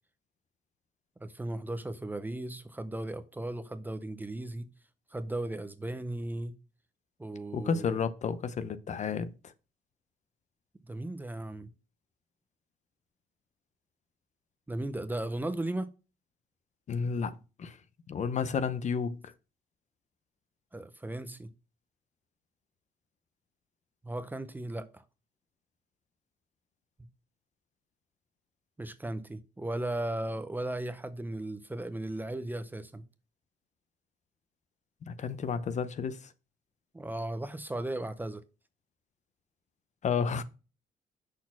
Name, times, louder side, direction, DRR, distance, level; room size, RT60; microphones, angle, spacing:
voice 1, 1.2-4.7 5.1-6.6 7.2-7.8 10.8-11.7 14.7-15.9 20.7-21.5 24.0-25.0 28.8-33.0 36.9-38.4, right 1 dB, 10° right, 0.5 m, -36 dB
voice 2, 7.5-9.3 16.9-17.3 17.6-17.8 18.1-19.3 35.0-36.3 40.0-40.4, left 6 dB, 45° left, 0.6 m, -31 dB
6.4 x 4.1 x 5.8 m
cardioid pair, 125°, 17 cm